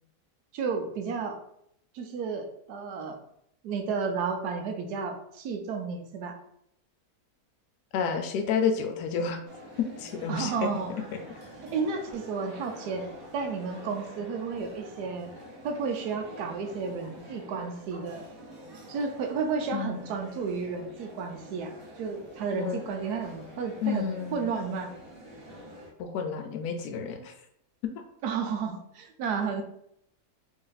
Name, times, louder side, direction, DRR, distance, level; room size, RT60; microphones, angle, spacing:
voice 1, 0.5-1.4 1.9-3.2 3.6-6.4 10.3-10.9 11.7-13.0 13.3-15.3 15.6-18.2 18.9-24.9 28.2-29.6, right 5 dB, 85° right, 4 dB, 1.2 m, -32 dB
voice 2, 7.9-9.4 9.8-10.5 19.7-20.1 22.5-22.8 23.8-24.5 26.0-27.3 27.8-27.9, left 6 dB, 85° left, 5 dB, 1.2 m, -30 dB
sound 1, 9.5-25.9, equal, 65° right, 1.2 m, -47 dB
3.3 x 2.6 x 3.9 m, 0.73 s
omnidirectional pair, 1.7 m